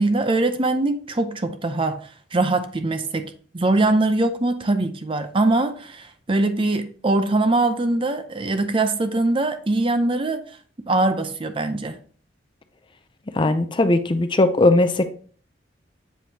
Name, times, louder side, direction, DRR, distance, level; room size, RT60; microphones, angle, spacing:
voice 1, 0.0-2.0 2.3-10.4 10.9-12.0, right 2 dB, 30° right, 0.5 m, -22 dB
voice 2, 13.3-15.0, left 2 dB, 25° left, 0.5 m, -18 dB
7.7 x 5.1 x 2.8 m
head